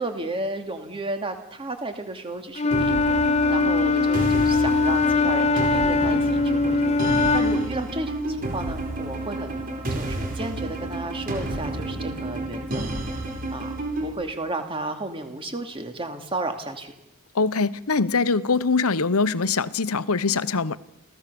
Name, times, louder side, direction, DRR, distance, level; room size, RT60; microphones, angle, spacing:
voice 1, 0.0-3.2 3.5-12.9 13.5-16.9, right 2 dB, 25° right, 2.5 m, -33 dB
Wind instrument woodwind instrument, 2.6-7.7, left 3 dB, 30° left, 0.7 m, -21 dB
sound 1, 2.7-14.1, right 2 dB, 40° right, 4.5 m, -30 dB
voice 2, 17.3-20.8, left 4 dB, 75° left, 0.9 m, -23 dB
29.5 x 16.0 x 7.0 m
head